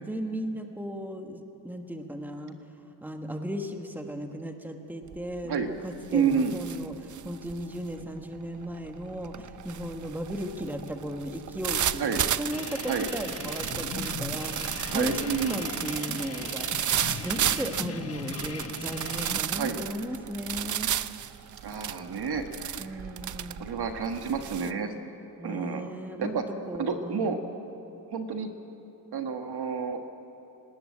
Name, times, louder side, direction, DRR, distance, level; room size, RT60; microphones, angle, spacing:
voice 1, 0.0-2.6 3.0-15.2 15.5-20.9 22.8-23.7 25.4-27.3, equal, 5° right, 5 dB, 1.4 m, -36 dB
sound 1, 5.1-5.4 5.8-24.7, right 10 dB, 50° right, 0.5 m, -33 dB
voice 2, 6.1-6.5 12.0-12.2 12.9-13.1 14.9-15.6 19.5-19.8 21.6-22.9 23.6-24.9 25.4-25.9 26.2-26.4 26.8-27.4 28.1-28.5 29.1-30.0, right 6 dB, 70° right, 6 dB, 1.6 m, -29 dB
sound 2, 12.5-19.4, left 5 dB, 35° left, 1.0 m, -39 dB
19.0 x 19.0 x 8.6 m, 3.0 s
wide cardioid pair, 125°, 40 cm